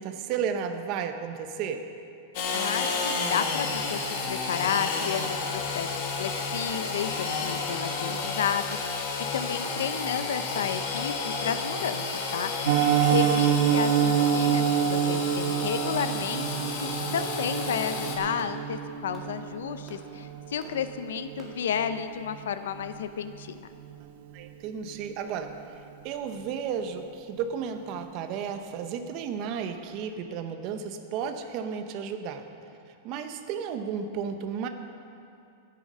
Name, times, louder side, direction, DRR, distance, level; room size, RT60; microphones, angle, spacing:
voice 1, 0.0-1.9 24.3-32.4 33.0-34.7, right 7 dB, 35° right, 7 dB, 0.8 m, -33 dB
Engine / Sawing, 2.3-18.2, left 4 dB, 45° left, 1.7 m, -31 dB
voice 2, 2.5-12.0 12.3-12.5 13.1-23.6, left 8 dB, 90° left, 11 dB, 0.6 m, -32 dB
sound 1, 6.7-6.9 7.7-7.9 8.7-8.9 9.6-9.8 10.6-10.7 11.5-11.7 12.4-12.6 13.4-13.6 14.2-14.4 15.1-15.3 15.9-16.1 16.8-17.0 17.6-17.8 18.4-18.6 19.1-19.3 19.9-20.1 20.6-20.8 21.4-21.6, right 2 dB, 20° right, 1.8 m, -48 dB
Piano, 12.6-23.5 23.8-24.0 24.4-24.5 24.9-25.1 25.4-25.5, right 9 dB, 60° right, 0.9 m, -28 dB
14.0 x 9.3 x 5.5 m, 2.5 s
supercardioid pair, 170°, 0 cm